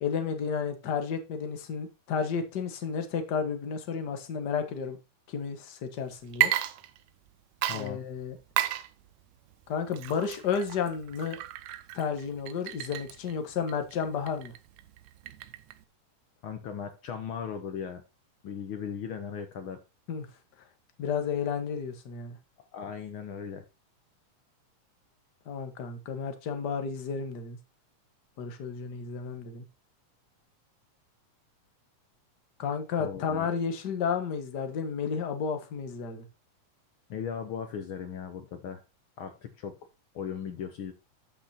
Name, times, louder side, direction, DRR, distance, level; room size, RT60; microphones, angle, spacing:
voice 1, 0.0-5.0 5.3-6.5 7.7-8.4 9.7-11.4 11.9-14.5 20.1-20.3 21.0-22.4 25.4-27.6 28.4-29.6 32.6-36.2, left 6 dB, 45° left, 1.5 m, -32 dB
Water / Liquid, 6.3-7.3 7.6-15.8, right 14 dB, 75° right, 1.9 m, -34 dB
voice 2, 7.7-8.0 16.4-18.0 18.4-19.8 22.7-23.6 33.0-33.5 37.1-38.8 39.2-39.8 40.1-40.9, left 7 dB, 85° left, 1.1 m, -37 dB
13.5 x 6.1 x 2.8 m
omnidirectional pair, 3.6 m